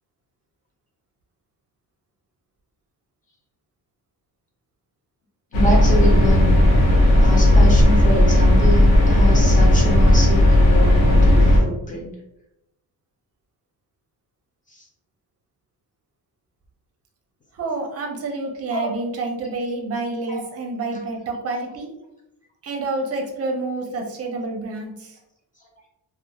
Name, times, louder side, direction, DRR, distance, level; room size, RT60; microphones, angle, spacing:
sound 1, 5.5-11.6, left 1 dB, 90° left, 1.0 m, -14 dB
voice 1, 5.5-6.6 7.2-12.1 14.7-14.8 18.7-18.9 19.7-19.8 20.3-20.4, equal, 20° left, -2 dB, 0.3 m, -26 dB
voice 2, 17.5-21.9 22.6-25.2, right 3 dB, 35° right, 2 dB, 0.5 m, -28 dB
2.9 x 2.1 x 2.2 m, 0.87 s
cardioid pair, 155°, 42 cm